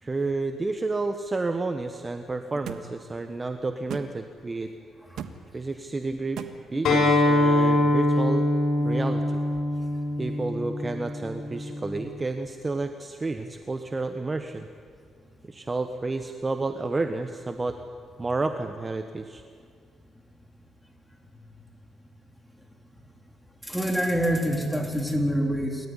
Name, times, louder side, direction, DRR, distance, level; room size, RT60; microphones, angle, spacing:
voice 1, 0.0-4.7 5.5-6.4 6.7-8.5 8.8-9.4 10.2-14.7 15.5-17.8 18.2-19.4, right 3 dB, 25° right, 7 dB, 1.2 m, -30 dB
sound 1, 2.7-2.8 3.9-4.1 5.2-5.3 6.4-6.5, right 9 dB, 75° right, 1.5 m, -35 dB
Acoustic guitar, 6.8-12.0, left 1 dB, 70° left, 7.3 m, -24 dB
voice 2, 23.7-25.8, equal, 5° left, 3 dB, 3.7 m, -26 dB
28.0 x 14.0 x 9.9 m, 2.2 s
cardioid pair, 90°, 0 cm